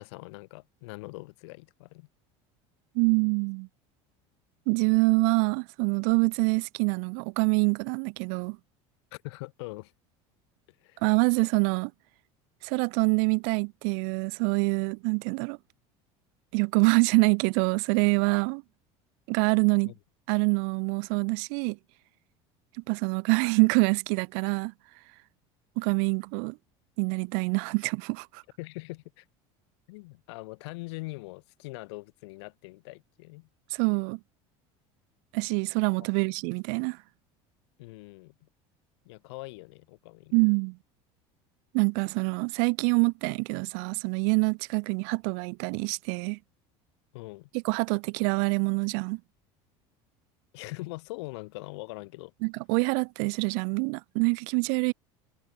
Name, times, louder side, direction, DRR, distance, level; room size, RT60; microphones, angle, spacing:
voice 1, 0.0-2.1 9.1-9.9 10.8-11.0 19.8-19.9 28.6-29.3 29.9-33.5 36.0-36.1 37.8-38.5 39.0-40.4 47.1-47.5 50.5-52.3, left 24 dB, 85° left, 7.5 m, -42 dB
voice 2, 2.9-3.7 4.7-8.6 11.0-11.9 12.6-15.6 16.5-18.6 19.3-19.9 20.3-21.8 22.9-24.7 25.8-26.6 27.0-28.4 33.7-34.2 35.3-37.0 40.3-40.8 41.7-46.4 47.6-49.2 52.4-54.9, right 40 dB or more, 70° right, 1.2 m, -25 dB
cardioid pair, 145°, 14 cm